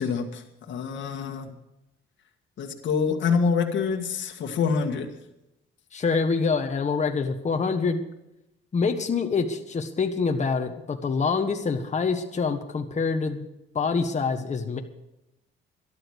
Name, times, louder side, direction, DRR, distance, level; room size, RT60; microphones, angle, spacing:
voice 1, 0.0-1.6 2.6-5.1, left 5 dB, 70° left, 3 dB, 1.8 m, -26 dB
voice 2, 5.9-8.0 8.7-13.5 13.7-14.8, left 4 dB, 35° left, 4 dB, 1.5 m, -26 dB
13.0 x 12.0 x 6.5 m, 0.88 s
cardioid pair, 90°, 20 cm